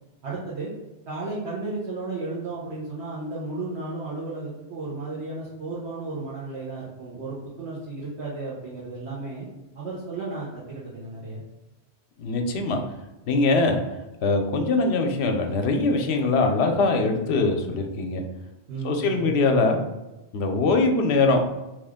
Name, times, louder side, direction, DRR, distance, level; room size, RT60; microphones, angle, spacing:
voice 1, 0.2-0.7 1.1-9.5 9.7-11.4 18.7-19.3, right 3 dB, 70° right, -7 dB, 1.1 m, -34 dB
voice 2, 12.2-12.8 13.3-13.8 14.2-18.2 18.8-19.8 20.3-21.4, left 3 dB, 75° left, 4 dB, 0.8 m, -22 dB
3.1 x 2.4 x 3.5 m, 1.0 s
omnidirectional pair, 1.2 m